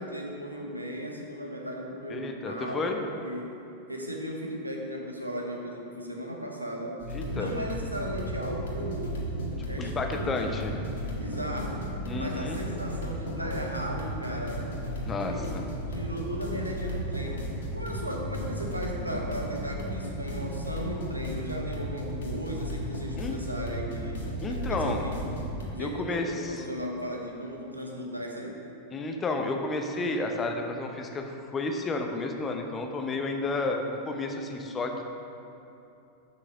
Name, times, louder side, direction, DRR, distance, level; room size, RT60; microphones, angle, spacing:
voice 1, 0.0-3.5 3.9-7.0 7.3-9.2 9.7-10.3 11.0-14.7 15.2-17.5 17.7-24.2 24.5-25.4 25.7-28.6, equal, 85° right, 0 dB, 1.0 m, -36 dB
voice 2, 2.1-3.0 7.1-7.5 9.8-10.7 12.1-12.6 15.0-15.6 23.2-23.3 24.4-25.1 25.8-26.5 28.9-35.0, left 3 dB, 20° left, 3 dB, 0.7 m, -31 dB
sound 1, 7.0-25.7, equal, 60° left, 1.5 m, -34 dB
6.4 x 5.8 x 6.2 m, 2.8 s
figure-of-eight pair, 90°, 0 cm